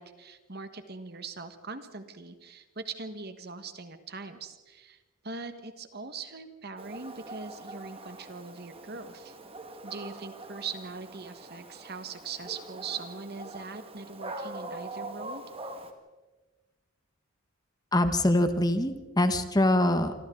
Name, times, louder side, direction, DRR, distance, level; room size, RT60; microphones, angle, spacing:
voice 1, 0.0-9.4 9.8-15.4, right 4 dB, 50° right, 9 dB, 1.6 m, -41 dB
Dog, 6.8-15.9, right 2 dB, 30° right, 1.9 m, -43 dB
voice 2, 17.9-20.1, left 1 dB, 20° left, 9 dB, 1.2 m, -24 dB
27.5 x 25.5 x 3.9 m, 1.2 s
head